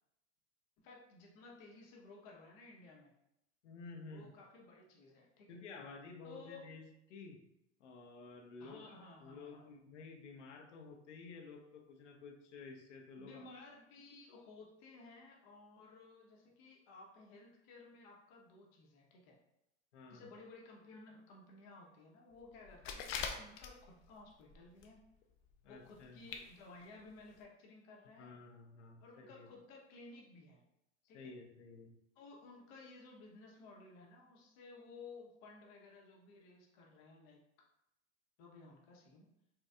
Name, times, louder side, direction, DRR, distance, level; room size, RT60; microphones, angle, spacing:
voice 1, 0.8-3.1 4.1-5.6 6.2-6.7 8.6-9.7 13.2-19.4 20.1-25.0 25.7-28.3 29.0-30.6 31.1-31.3 32.2-37.4 38.4-39.3, left 3 dB, 50° left, 0 dB, 0.9 m, -56 dB
voice 2, 3.6-4.3 5.5-7.5 7.8-8.9 9.2-13.5 19.9-20.2 25.6-26.2 28.2-29.5 31.1-32.0, left 4 dB, 80° left, 3 dB, 0.7 m, -52 dB
sound 1, 22.6-24.1 24.5-25.0 25.2-25.3 26.0-26.1 26.3-26.5 26.8-26.9 27.4-27.5, left 6 dB, 35° left, 0.4 m, -42 dB
4.2 x 2.3 x 2.3 m, 0.84 s
hypercardioid pair, 105°, 35 cm